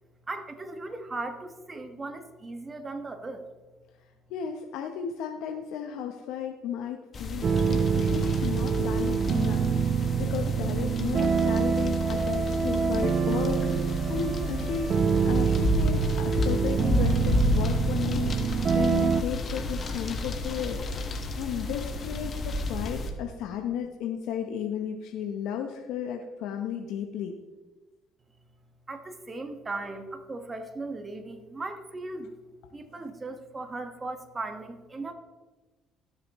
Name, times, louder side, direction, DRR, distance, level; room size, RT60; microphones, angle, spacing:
voice 1, 0.3-3.4 28.9-32.3 32.7-35.1, right 2 dB, 25° right, 6 dB, 1.5 m, -37 dB
voice 2, 4.3-14.9 15.2-20.8 21.0-27.3, left 8 dB, 80° left, 3 dB, 0.8 m, -34 dB
sound 1, 7.1-23.1, left 2 dB, 45° left, 1.4 m, -31 dB
sound 2, 7.4-19.2, right 6 dB, 45° right, 0.6 m, -26 dB
17.0 x 7.0 x 3.1 m, 1.2 s
supercardioid pair, 75°, 0 cm